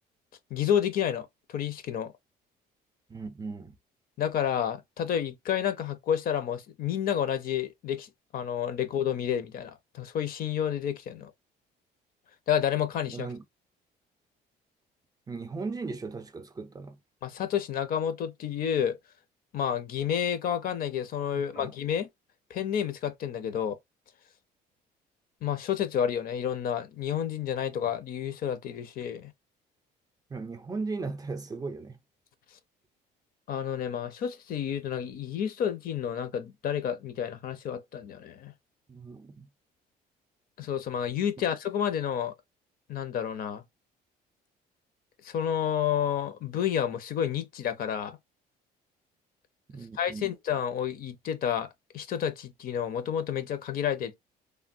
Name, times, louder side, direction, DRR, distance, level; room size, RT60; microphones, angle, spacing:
voice 1, 0.5-1.3 1.5-2.1 4.2-11.3 12.5-13.3 17.2-19.0 19.5-22.1 22.5-23.8 25.4-29.3 33.5-38.5 40.6-42.3 42.9-43.6 45.2-48.2 50.0-51.7 51.9-54.1, left 9 dB, 60° left, 0.6 m, -30 dB
voice 2, 3.1-3.8 13.1-13.4 15.3-17.0 21.3-21.7 30.3-32.0 38.9-39.5 49.7-50.3, right 4 dB, 20° right, 0.5 m, -37 dB
3.2 x 2.1 x 2.5 m
cardioid pair, 110°, 17 cm